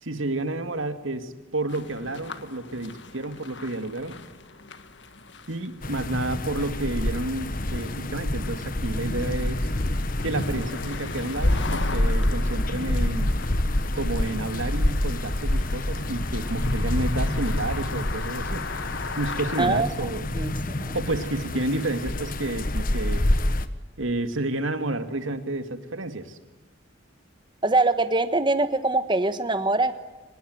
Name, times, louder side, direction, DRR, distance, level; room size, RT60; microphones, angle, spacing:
voice 1, 0.0-4.2 5.5-9.7 10.2-13.3 13.9-18.7 19.1-20.3 20.9-23.3 24.0-26.4, right 2 dB, 75° right, 9 dB, 2.2 m, -30 dB
sound 1, 1.7-19.7, left 4 dB, 60° left, 1.7 m, -40 dB
sound 2, 5.8-23.7, left 1 dB, 45° left, 1.3 m, -27 dB
voice 2, 19.6-19.9 20.3-20.5 20.8-21.0 27.6-29.9, right 2 dB, 25° right, 11 dB, 1.3 m, -23 dB
24.0 x 20.5 x 9.4 m, 1.2 s
head